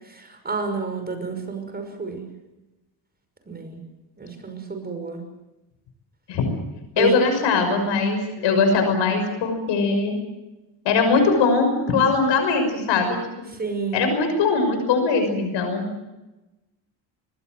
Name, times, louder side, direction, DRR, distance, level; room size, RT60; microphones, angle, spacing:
voice 1, 0.1-2.2 3.5-3.8 4.2-5.2 7.0-7.2 8.4-8.6 13.6-14.1, right 4 dB, 20° right, 6 dB, 6.0 m, -30 dB
voice 2, 7.0-10.2 10.8-13.2 13.9-15.9, left 4 dB, 90° left, 5 dB, 6.3 m, -21 dB
24.5 x 21.0 x 7.9 m, 1.0 s
cardioid pair, 130°, 42 cm